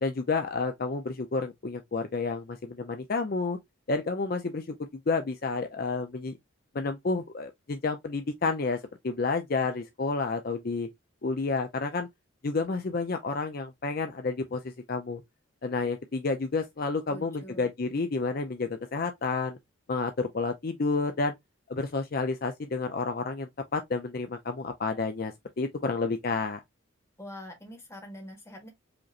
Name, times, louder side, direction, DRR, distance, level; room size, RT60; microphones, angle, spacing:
voice 1, 0.0-3.6 3.9-4.7 5.1-6.4 6.7-10.9 11.2-12.1 12.4-15.2 15.6-19.6 19.9-21.3 21.7-26.6, left 4 dB, 45° left, 0.5 m, -30 dB
voice 2, 17.1-17.7 27.2-28.7, equal, 15° left, 1.3 m, -44 dB
5.0 x 3.0 x 2.4 m
head